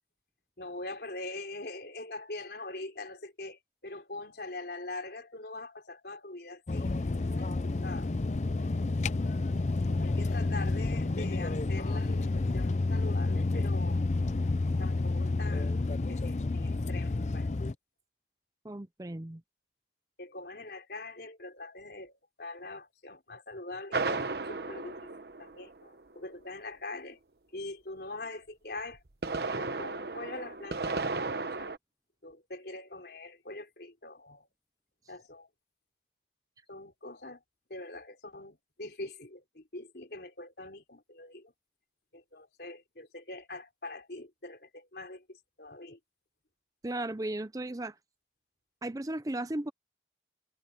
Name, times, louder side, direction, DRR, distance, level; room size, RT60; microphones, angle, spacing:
voice 1, 0.6-6.9 7.2-8.1 10.0-14.1 14.8-15.8 16.1-17.5 20.2-25.1 25.4-27.2 27.5-29.0 29.5-31.7 32.2-34.5 35.1-35.5 36.7-37.4 37.7-41.5 42.1-46.0, left 2 dB, 65° left, 3.6 m, -43 dB
sound 1, 6.7-17.7, left 3 dB, 40° left, 0.5 m, -30 dB
voice 2, 18.6-19.4 46.8-48.0 48.8-49.7, right 1 dB, 20° right, 0.5 m, -35 dB
sound 2, 23.9-26.0 28.9-31.8, right 3 dB, 65° right, 1.1 m, -34 dB
head